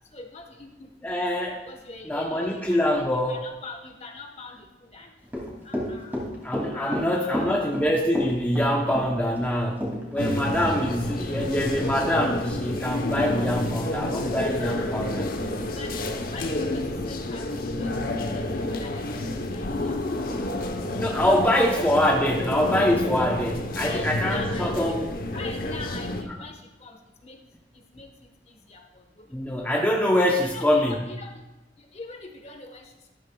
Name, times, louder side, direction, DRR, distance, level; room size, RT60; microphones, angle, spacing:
voice 1, 0.1-1.3 1.7-5.1 5.6-6.2 6.7-7.7 10.9-11.6 15.5-20.3 21.1-21.2 23.8-25.0 25.3-27.4 27.7-29.4 30.3-31.4 31.8-33.1, left 3 dB, 35° left, 4 dB, 1.2 m, -43 dB
voice 2, 1.0-1.6 2.0-3.4 6.4-15.3 21.0-25.1 29.3-31.0, left 1 dB, 10° left, -1 dB, 0.8 m, -24 dB
Run / Walk footsteps, 5.3-10.3 10.6-10.7, left 1 dB, 10° right, 2.5 m, -30 dB
sound 1, 10.2-26.2, left 1 dB, 55° left, 0.9 m, -29 dB
13.0 x 12.5 x 2.3 m, 1.0 s
head